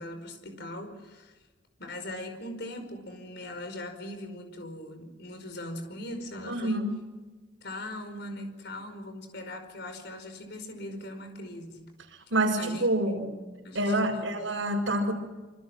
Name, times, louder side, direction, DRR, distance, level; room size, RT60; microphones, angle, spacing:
voice 1, 0.0-1.4 1.8-6.8 7.6-11.9 12.6-12.9 13.6-14.4, left 1 dB, 60° left, 6 dB, 5.2 m, -40 dB
voice 2, 6.5-6.9 12.3-13.3 13.7-15.1, right 1 dB, 80° right, -1 dB, 6.5 m, -27 dB
27.5 x 25.5 x 6.4 m, 1.2 s
head